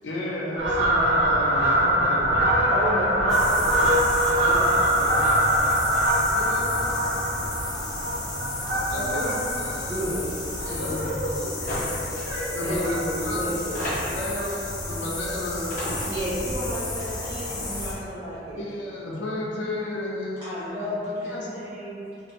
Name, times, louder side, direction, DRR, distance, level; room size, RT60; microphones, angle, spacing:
voice 1, 0.0-2.5 6.3-7.1 8.9-10.1 10.6-11.4 12.5-13.5 13.9-15.7 17.2-17.3 17.8-18.0 18.6-20.6 20.8-21.0 21.2-21.5, left 1 dB, 85° left, -4 dB, 0.5 m, -32 dB
Fowl, 0.6-11.4 11.8-12.0 12.8-13.3 13.6-13.7 14.0-14.1 14.4-14.5 14.8-14.9 15.9-16.0 16.6-16.7, right 1 dB, 85° right, 0.7 m, -23 dB
voice 2, 2.7-5.2 5.5-5.7 8.6-9.4 9.7-10.3 12.6-14.0 16.1-18.6 20.4-22.1, equal, 25° right, -13 dB, 0.5 m, -32 dB
sound 1, 3.3-17.9, left 2 dB, 20° left, 0.3 m, -33 dB
voice 3, 10.6-12.9, equal, 70° right, -11 dB, 1.0 m, -34 dB
sound 2, 11.7-11.9 12.2-12.3 13.2-13.3 13.7-14.3 15.3-15.4 15.7-16.1, left 1 dB, 45° left, 0.7 m, -31 dB
2.3 x 2.1 x 2.8 m, 2.8 s
head